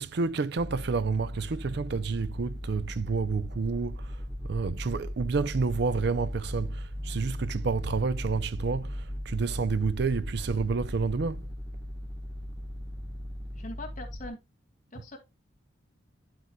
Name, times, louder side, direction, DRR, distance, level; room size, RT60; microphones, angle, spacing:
voice 1, 0.0-11.5, right 4 dB, 60° right, 0.5 m, -29 dB
sound 1, 0.6-14.3, equal, 10° right, 1.2 m, -37 dB
voice 2, 13.5-14.4 14.9-15.2, left 2 dB, 40° left, 2.3 m, -41 dB
9.6 x 8.2 x 2.2 m
head